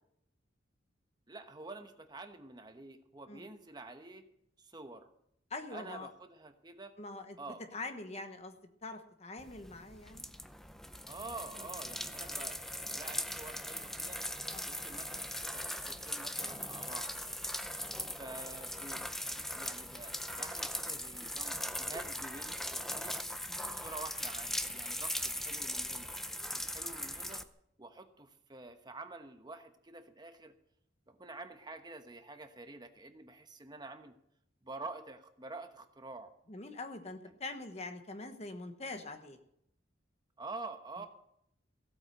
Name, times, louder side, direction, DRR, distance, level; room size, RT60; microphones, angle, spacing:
voice 1, 1.3-4.3 4.6-5.1 5.7-6.9 7.4-7.6 11.1-14.2 14.7-17.1 18.0-23.2 23.6-26.1 26.5-27.4 27.8-30.5 31.1-34.2 34.6-36.3 40.4-41.1, right 3 dB, 20° right, 7 dB, 1.0 m, -48 dB
voice 2, 5.5-6.1 7.0-7.4 7.7-8.5 8.8-10.3 14.5-14.7 23.5-23.8 36.5-39.4, left 2 dB, 35° left, 7 dB, 1.1 m, -44 dB
sound 1, 9.4-27.4, left 1 dB, ahead, 0.5 m, -40 dB
15.5 x 8.7 x 6.5 m, 0.74 s
head